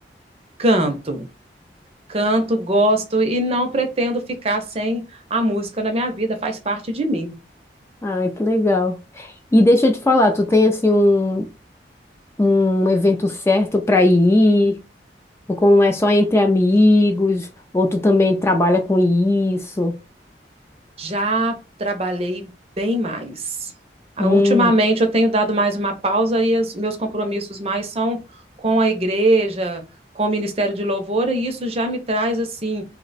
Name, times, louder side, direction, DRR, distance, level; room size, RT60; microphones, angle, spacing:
voice 1, 0.6-1.3 2.1-5.0 5.3-7.4 21.0-22.5 22.8-23.7 24.2-28.2 28.6-29.8 30.2-32.8, right 1 dB, 35° right, 0.6 m, -21 dB
voice 2, 8.0-11.4 12.4-14.7 15.5-17.5 17.7-19.9 24.2-24.7, left 2 dB, 15° left, 0.3 m, -17 dB
2.8 x 2.1 x 3.9 m
head